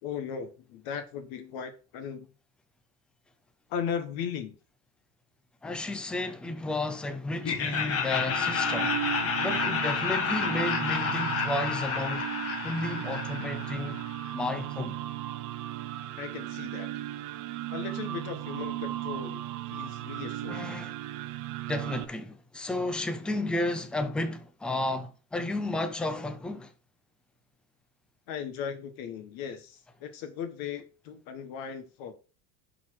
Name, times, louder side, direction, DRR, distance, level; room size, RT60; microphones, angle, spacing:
voice 1, 0.0-2.3 3.7-4.5 16.2-16.9 17.7-20.7 28.3-32.1, left 7 dB, 55° left, 1.5 m, -37 dB
voice 2, 5.6-9.0 9.4-12.3 12.6-14.0 14.3-14.9 20.5-21.0 21.7-26.7, left 2 dB, ahead, 0.3 m, -32 dB
Laughter, 7.4-14.4, left 6 dB, 35° left, 1.4 m, -30 dB
sound 1, 7.8-22.0, right 14 dB, 45° right, 0.9 m, -36 dB
11.0 x 4.3 x 4.7 m
cardioid pair, 175°, 42 cm